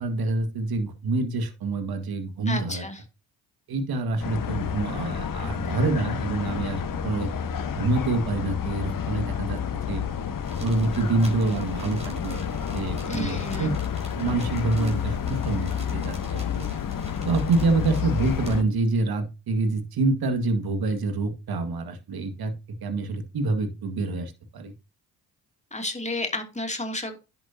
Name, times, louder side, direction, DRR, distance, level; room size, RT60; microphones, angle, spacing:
voice 1, 0.0-2.8 3.7-7.3 7.8-10.0 10.6-12.4 12.7-13.7 14.1-16.7 17.2-22.5 22.8-24.7, right 3 dB, 55° right, 9 dB, 2.0 m, -26 dB
voice 2, 2.5-3.0 13.1-13.8 25.7-27.2, left 1 dB, 15° left, 4 dB, 2.7 m, -31 dB
sound 1, 4.2-18.6, left 8 dB, 50° left, 1.3 m, -30 dB
sound 2, 10.4-18.6, right 1 dB, 15° right, 4.5 m, -46 dB
10.5 x 7.9 x 2.8 m, 0.29 s
hypercardioid pair, 50°, 43 cm